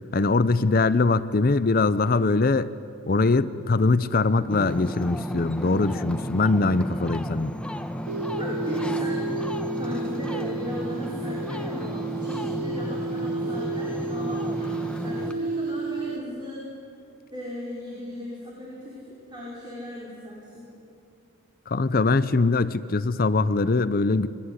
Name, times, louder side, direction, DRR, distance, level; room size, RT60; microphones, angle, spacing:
voice 1, 0.1-2.7 3.0-7.5 21.7-24.3, left 3 dB, 40° left, 15 dB, 0.6 m, -22 dB
Ocean, 4.5-15.3, equal, 5° left, 1.1 m, -33 dB
sound 1, 8.1-16.2, right 3 dB, 80° right, 0.9 m, -31 dB
voice 2, 8.4-9.2 9.8-16.6 17.3-19.0 19.3-20.7, left 1 dB, 20° right, -6 dB, 5.5 m, -37 dB
28.0 x 22.0 x 9.6 m, 2.5 s
head